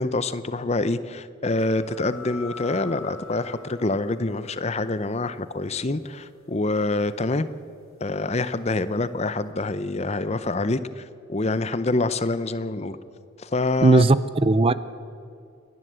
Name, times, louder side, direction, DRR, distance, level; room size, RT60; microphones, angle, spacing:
voice 1, 0.0-7.5 8.0-13.0 13.4-14.0, left 2 dB, 30° left, 14 dB, 0.6 m, -26 dB
sound 1, 1.6-8.8, left 3 dB, 75° left, 2.9 m, -45 dB
voice 2, 13.8-14.7, right 3 dB, 25° right, 15 dB, 0.4 m, -17 dB
29.0 x 11.0 x 8.1 m, 2.5 s
head